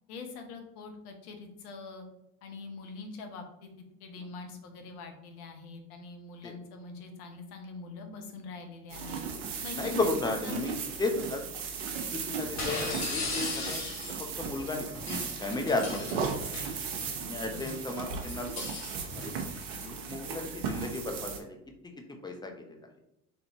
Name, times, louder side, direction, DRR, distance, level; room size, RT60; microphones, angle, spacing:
voice 1, 0.1-2.1 2.4-3.7 4.0-9.2 9.6-10.0 10.4-10.6 17.3-17.7, left 4 dB, 70° left, 4 dB, 1.0 m, -44 dB
sound 1, 8.9-21.4, right 6 dB, 60° right, 1.0 m, -37 dB
voice 2, 9.7-11.4 12.0-13.9 14.4-16.4 17.3-18.5 19.2-19.3 19.8-21.6 22.2-22.8, left 2 dB, 10° left, 3 dB, 0.7 m, -34 dB
sound 2, 10.4-10.7 12.6-14.3 14.9-17.2 17.6-19.6, left 3 dB, 35° left, 1.3 m, -38 dB
3.8 x 3.7 x 2.8 m, 0.85 s
hypercardioid pair, 70°, 46 cm